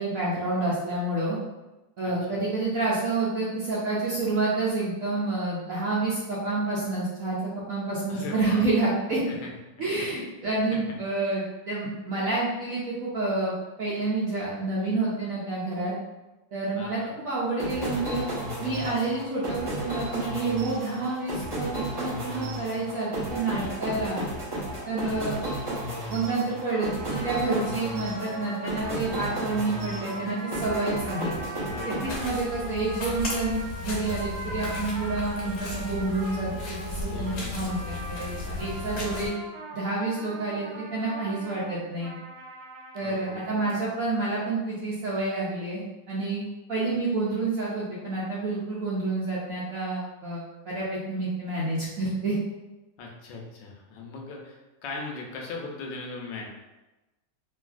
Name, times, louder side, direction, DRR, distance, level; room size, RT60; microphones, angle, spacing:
voice 1, 0.0-1.4 2.0-7.4 7.7-9.2 9.8-13.5 13.8-15.9 16.5-18.3 18.6-24.2 24.8-25.4 26.1-31.4 31.8-39.3 39.7-42.2 42.9-46.4 46.7-52.4, right 3 dB, 65° right, -7 dB, 0.9 m, -29 dB
voice 2, 2.0-2.4 8.1-8.7 9.3-9.5 10.0-10.1 10.7-11.0 16.8-17.1 23.9-24.3 25.0-25.3 31.6-32.7 37.1-38.4 43.0-43.7 53.0-56.5, left 3 dB, 85° left, 0 dB, 1.3 m, -40 dB
sound 1, 17.6-32.9, right 1 dB, 30° right, 0.4 m, -34 dB
sound 2, 26.6-43.8, right 2 dB, 80° right, 1.3 m, -41 dB
sound 3, 32.1-39.3, left 3 dB, 65° left, 1.0 m, -35 dB
3.1 x 2.6 x 2.4 m, 1.0 s
omnidirectional pair, 2.0 m